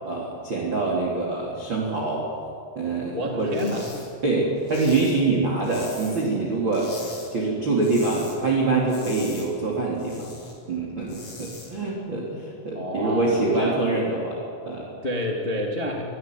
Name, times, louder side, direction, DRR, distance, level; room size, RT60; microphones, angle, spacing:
voice 1, 0.0-2.2 2.7-3.6 4.2-6.9 7.3-10.3 10.7-14.4 14.6-14.9, right 3 dB, 30° right, -3 dB, 3.0 m, -25 dB
voice 2, 3.1-3.9 12.7-13.9 15.0-16.0, equal, 75° left, -1 dB, 0.5 m, -29 dB
sound 1, 3.5-4.1 4.3-6.4 6.7-7.3 7.6-8.4 8.7-10.5 10.9-11.7, left 3 dB, 30° left, 6.3 m, -42 dB
25.0 x 16.5 x 9.4 m, 2.6 s
omnidirectional pair, 6.0 m